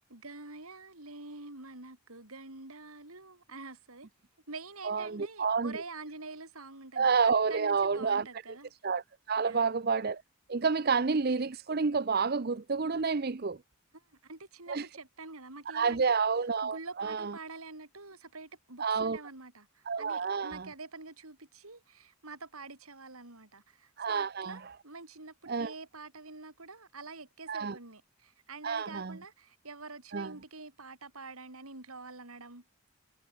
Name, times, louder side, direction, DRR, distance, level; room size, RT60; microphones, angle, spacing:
voice 1, 0.0-4.1 4.5-8.7 9.4-9.7 13.9-16.2 16.6-32.6, right 3 dB, 80° right, 4.8 m, -46 dB
voice 2, 4.8-5.7 7.0-8.3 8.8-10.2 10.5-13.6 14.7-14.9 15.7-17.3 18.8-19.2 19.9-20.7 24.0-24.6 25.5-25.7 27.5-27.8 28.6-29.2 30.1-30.3, right 5 dB, 45° right, 0.6 m, -29 dB
head